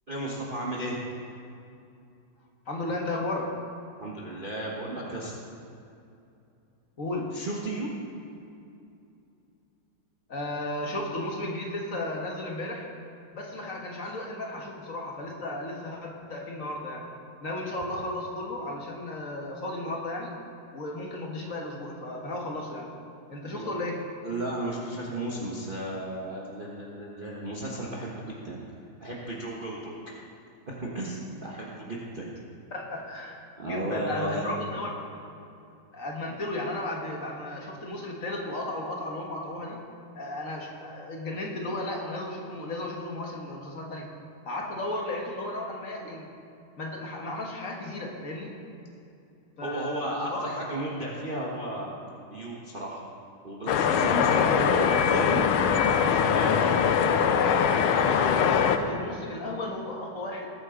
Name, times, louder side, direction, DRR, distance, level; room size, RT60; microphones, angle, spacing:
voice 1, 0.1-1.0 4.0-5.3 7.3-7.9 23.5-23.7 24.2-28.6 29.0-30.0 30.7-32.4 33.6-34.5 49.6-51.9 52.3-53.0 53.4-55.4 55.8-56.6, right 1 dB, 30° right, -5 dB, 1.1 m, -34 dB
voice 2, 2.7-3.5 7.0-7.3 10.3-12.9 13.3-17.1 17.4-20.3 20.7-22.9 23.3-24.0 32.7-34.9 35.9-39.8 40.1-44.1 44.4-46.3 46.8-48.5 49.6-50.6 54.2-54.6 57.9-60.5, left 1 dB, 45° left, 0 dB, 1.6 m, -34 dB
sound 1, 53.7-58.8, left 7 dB, 85° left, 1.5 m, -22 dB
20.0 x 8.6 x 3.8 m, 2.6 s
omnidirectional pair, 2.3 m